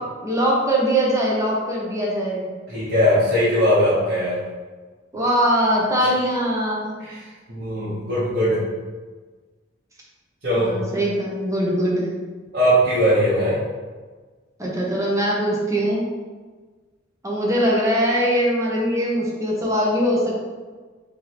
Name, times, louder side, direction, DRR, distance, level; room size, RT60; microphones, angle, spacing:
voice 1, 0.2-2.5 5.1-6.9 10.5-12.1 14.6-16.1 17.2-20.4, equal, 15° right, -4 dB, 0.8 m, -21 dB
voice 2, 2.7-4.4 7.0-7.2 7.5-8.6 10.4-10.7 12.5-13.6, equal, 60° right, -11 dB, 1.1 m, -19 dB
3.2 x 2.7 x 4.2 m, 1.4 s
head